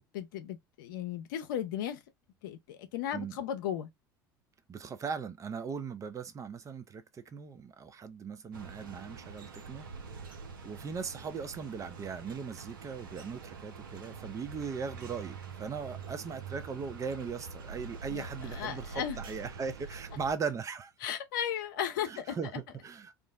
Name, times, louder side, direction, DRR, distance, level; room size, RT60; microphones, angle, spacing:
voice 1, 0.1-2.0 2.4-3.9 18.1-19.2 21.0-22.6, left 9 dB, 65° left, 0.6 m, -36 dB
voice 2, 4.7-9.9 10.3-10.4 10.6-20.9 22.0-23.2, right 5 dB, 30° right, 0.5 m, -39 dB
sound 1, 8.5-20.3, right 5 dB, 75° right, 0.5 m, -45 dB
2.5 x 2.0 x 3.4 m
figure-of-eight pair, 65°, 11 cm